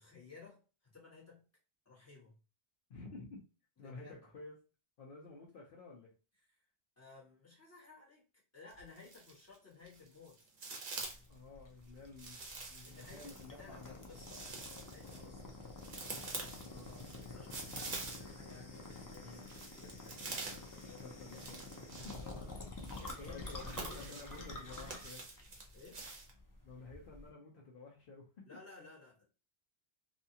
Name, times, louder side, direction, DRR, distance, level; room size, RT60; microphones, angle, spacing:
voice 1, 0.0-1.4 1.8-2.4 3.8-4.2 6.4-6.6 7.0-8.2 8.5-10.4 12.8-16.0 17.3-19.4 19.7-21.2 22.2-22.7 23.0-25.0 25.7-26.0 28.4-29.2, left 4 dB, 15° left, -5 dB, 1.1 m, -57 dB
voice 2, 2.9-3.4 3.8-4.5 5.0-6.1 11.3-13.9 15.0-15.4 16.6-17.4 19.2-19.5 21.0-22.2 23.2-25.2 26.6-28.3, left 3 dB, 60° left, -2 dB, 0.8 m, -52 dB
sound 1, 8.7-9.6 9.9-11.3 12.2-18.5 18.8-26.3, right 3 dB, 55° right, 0.8 m, -47 dB
sound 2, 11.0-27.3, left 2 dB, 35° left, 0.3 m, -49 dB
2.6 x 2.3 x 2.7 m, 0.33 s
omnidirectional pair, 1.1 m